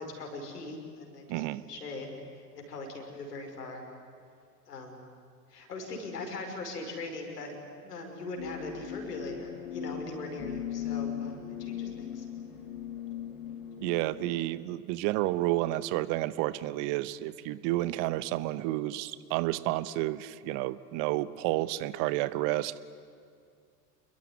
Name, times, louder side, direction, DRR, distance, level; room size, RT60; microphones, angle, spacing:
voice 1, 0.0-3.9 4.7-5.0 5.5-7.6 7.8-12.3, left 2 dB, 70° left, 3 dB, 5.5 m, -40 dB
voice 2, 1.3-1.6 13.8-22.7, right 16 dB, 40° right, 17 dB, 1.0 m, -30 dB
sound 1, 8.4-14.5, left 9 dB, 55° left, 3.7 m, -38 dB
27.5 x 22.0 x 9.7 m, 2.2 s
figure-of-eight pair, 85°, 48 cm